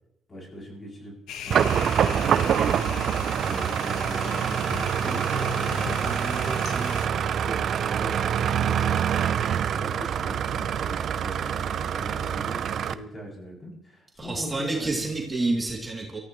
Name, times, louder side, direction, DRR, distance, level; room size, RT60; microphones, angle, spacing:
voice 1, 0.3-1.2 1.4-9.0 9.7-15.1, equal, 30° left, -2 dB, 7.6 m, -40 dB
sound 1, 1.3-7.1, left 8 dB, 90° left, 1.3 m, -38 dB
sound 2, 1.5-12.9, right 8 dB, 65° right, 0.6 m, -25 dB
voice 2, 14.2-16.2, right 2 dB, 20° right, -2 dB, 2.9 m, -28 dB
23.5 x 14.5 x 3.2 m, 0.87 s
cardioid pair, 90°, 0 cm